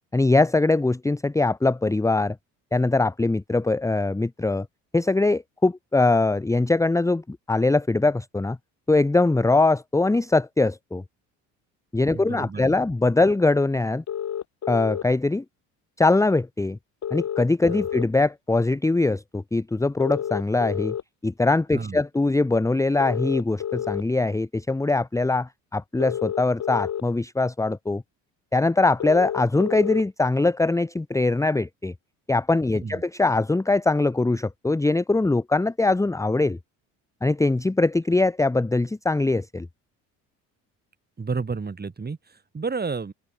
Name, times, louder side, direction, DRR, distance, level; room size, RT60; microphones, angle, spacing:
voice 1, 0.1-2.4 2.7-4.7 4.9-8.6 8.9-11.0 11.9-14.0 14.7-15.4 16.0-16.8 17.1-20.9 21.2-28.0 28.5-31.9 32.3-36.6 37.2-39.7, left 2 dB, 10° left, 1.0 m, -22 dB
voice 2, 12.1-12.9 17.7-17.8 21.7-22.0 32.7-33.0 41.2-43.1, right 4 dB, 25° right, 6.1 m, -31 dB
sound 1, 14.1-15.0 17.0-18.0 20.0-21.0 23.0-24.0 26.0-27.0 29.0-30.0, left 9 dB, 50° left, 3.8 m, -29 dB
open air
supercardioid pair, 80°, 37 cm